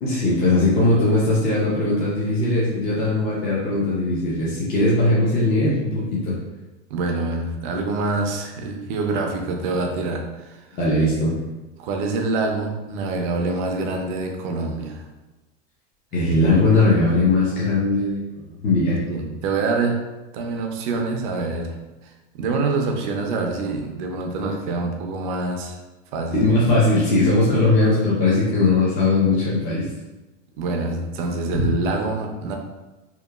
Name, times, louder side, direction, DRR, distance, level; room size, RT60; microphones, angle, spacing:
voice 1, 0.0-6.4 10.8-11.4 16.1-19.0 26.3-29.9 31.5-31.7, left 2 dB, 25° left, -8 dB, 0.5 m, -19 dB
voice 2, 6.9-10.6 11.8-15.1 19.1-20.0 20.3-25.8 26.1-26.4 30.6-32.6, right 3 dB, 45° right, 3 dB, 0.4 m, -26 dB
2.9 x 2.2 x 2.2 m, 1.1 s
supercardioid pair, 140°, 37 cm